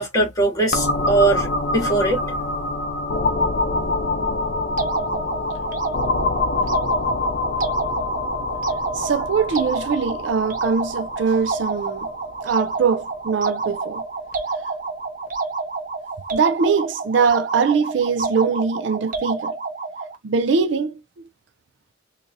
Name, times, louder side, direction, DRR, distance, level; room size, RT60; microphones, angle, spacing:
voice 1, 0.0-2.2, right 2 dB, 20° left, 2.0 m, -20 dB
sound 1, 0.7-14.3, left 2 dB, 55° left, 0.7 m, -26 dB
sound 2, 4.8-20.2, right 4 dB, 45° right, 0.9 m, -29 dB
voice 2, 8.9-12.1 12.4-14.0 16.3-19.5 20.2-21.0, right 5 dB, 70° right, 0.4 m, -22 dB
3.8 x 2.7 x 2.6 m
head